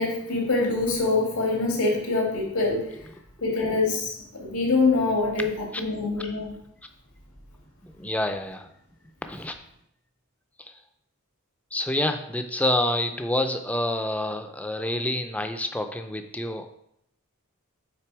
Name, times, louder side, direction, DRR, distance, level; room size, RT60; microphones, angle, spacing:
voice 1, 0.0-2.9 3.4-4.1 4.4-6.5, left 3 dB, 90° left, -2 dB, 2.2 m, -24 dB
voice 2, 7.8-8.7 9.2-9.5 10.6-10.7 11.7-16.7, left 1 dB, 5° left, 7 dB, 0.4 m, -28 dB
5.9 x 4.1 x 4.7 m, 0.74 s
head